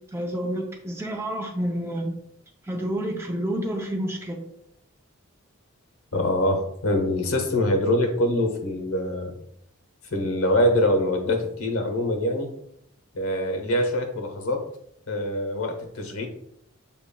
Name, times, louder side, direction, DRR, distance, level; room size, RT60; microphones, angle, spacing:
voice 1, 0.1-2.1 2.6-4.5, right 1 dB, 10° right, 1 dB, 0.4 m, -29 dB
voice 2, 6.1-9.3 10.1-12.5 13.1-14.7 15.1-16.3, left 1 dB, 80° left, 4 dB, 0.9 m, -24 dB
6.9 x 2.9 x 2.2 m, 0.74 s
head